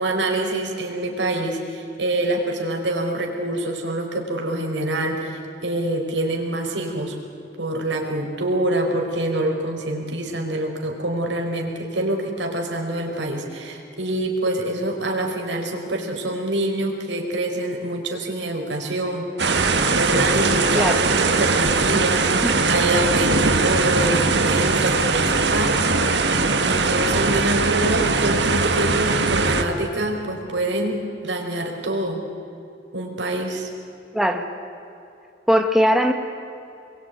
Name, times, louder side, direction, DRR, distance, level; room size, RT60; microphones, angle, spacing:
voice 1, 0.0-7.1 7.6-19.2 19.9-25.9 26.6-32.2 32.9-33.7, right 1 dB, 90° right, 2 dB, 4.9 m, -25 dB
sound 1, 19.4-29.6, right 3 dB, 75° right, 1.9 m, -20 dB
voice 2, 34.1-34.5 35.5-36.1, equal, ahead, 4 dB, 1.5 m, -19 dB
27.5 x 22.5 x 9.4 m, 2.7 s
head